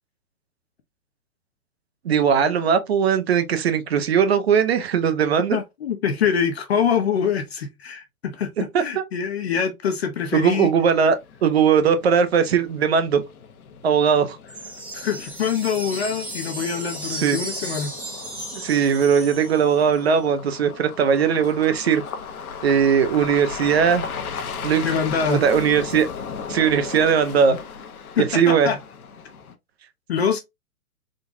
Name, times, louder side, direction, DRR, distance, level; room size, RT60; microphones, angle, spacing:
voice 1, 2.0-5.6 8.7-9.0 10.3-13.2 13.8-14.4 17.2-17.4 18.5-22.0 22.6-24.0 24.6-24.9 25.3-26.1 26.5-27.6 28.2-28.7, right 7 dB, 45° right, 0.6 m, -19 dB
voice 2, 5.5-10.7 14.9-17.9 24.8-25.4 28.1-28.8 30.1-30.4, left 7 dB, 45° left, 0.6 m, -24 dB
sound 1, 10.2-29.6, left 6 dB, 70° left, 0.9 m, -37 dB
sound 2, 14.5-20.0, right 2 dB, 5° right, 0.6 m, -35 dB
3.8 x 2.3 x 2.5 m
hypercardioid pair, 160°, 44 cm